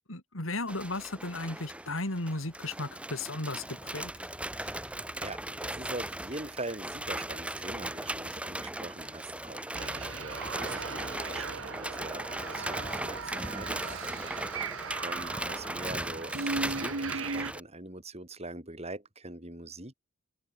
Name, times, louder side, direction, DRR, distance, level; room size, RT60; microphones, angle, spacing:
voice 1, 0.1-4.1, left 2 dB, 80° left, 4.3 m, -35 dB
sound 1, 0.7-17.6, right 1 dB, 5° right, 5.4 m, -38 dB
voice 2, 4.6-5.0 5.2-14.4 14.9-19.9, right 2 dB, 30° right, 7.4 m, -43 dB
sound 2, 9.7-17.5, right 4 dB, 85° right, 1.7 m, -38 dB
head